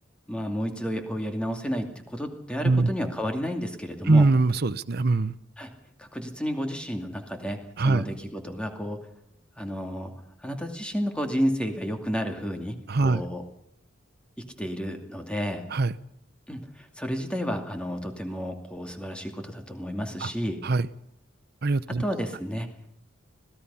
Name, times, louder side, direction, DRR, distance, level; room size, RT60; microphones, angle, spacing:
voice 1, 0.3-4.3 5.6-5.7 6.0-9.0 9.6-10.1 10.4-13.4 14.6-15.7 16.5-20.6 22.0-22.7, equal, 5° left, 4 dB, 2.5 m, -31 dB
voice 2, 4.0-5.4 7.8-8.0 12.9-13.2 15.7-15.9 20.2-20.3 20.6-20.9 21.6-22.0, right 3 dB, 50° right, 13 dB, 0.8 m, -22 dB
25.5 x 18.0 x 5.7 m, 0.75 s
head